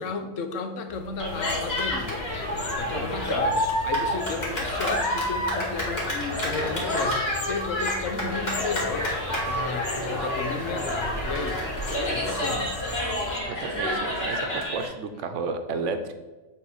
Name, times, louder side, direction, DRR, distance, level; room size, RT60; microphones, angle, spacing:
voice 1, 0.0-2.3 2.8-12.8, left 4 dB, 90° left, 7 dB, 1.2 m, -33 dB
Car, 0.9-14.6, left 1 dB, 10° left, 1.4 m, -46 dB
Cheering, 1.2-14.9, equal, 55° left, 2.3 m, -28 dB
sound 1, 1.3-13.4, left 3 dB, 40° left, 0.3 m, -40 dB
voice 2, 13.5-16.2, right 4 dB, 75° right, 8 dB, 1.1 m, -32 dB
7.8 x 3.8 x 4.9 m, 1.2 s
omnidirectional pair, 1.3 m